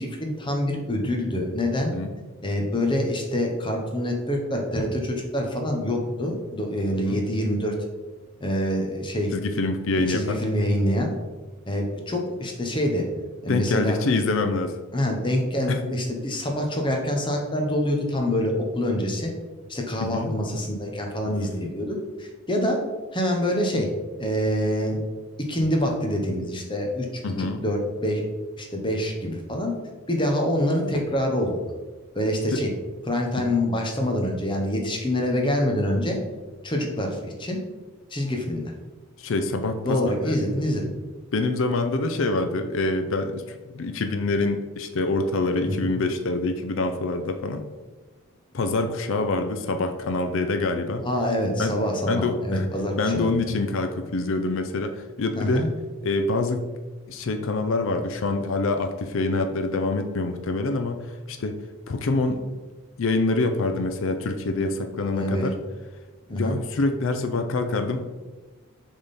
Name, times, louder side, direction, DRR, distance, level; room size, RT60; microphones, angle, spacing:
voice 1, 0.0-1.9 2.4-7.7 8.4-9.3 9.9-11.1 11.7-13.1 13.4-14.0 14.9-19.3 19.7-22.8 23.1-23.9 24.2-25.0 25.5-27.1 27.4-28.3 28.6-29.7 30.1-31.6 32.1-32.7 33.1-36.2 36.6-37.6 38.1-38.7 39.8-40.9 45.6-45.9 51.0-53.3 55.3-55.7 65.2-65.5 66.3-66.6, left 1 dB, 20° left, 2 dB, 0.8 m, -26 dB
voice 2, 9.3-10.4 13.5-14.8 15.7-15.8 20.0-20.3 21.3-21.4 27.2-27.6 32.5-32.6 39.2-40.4 41.3-43.4 43.7-47.6 48.5-51.1 51.6-51.7 52.1-52.7 53.0-55.7 56.0-56.6 57.1-61.6 61.9-62.5 63.0-65.6 66.3-68.1, left 3 dB, 60° left, 7 dB, 0.4 m, -25 dB
6.7 x 3.6 x 4.1 m, 1.3 s
head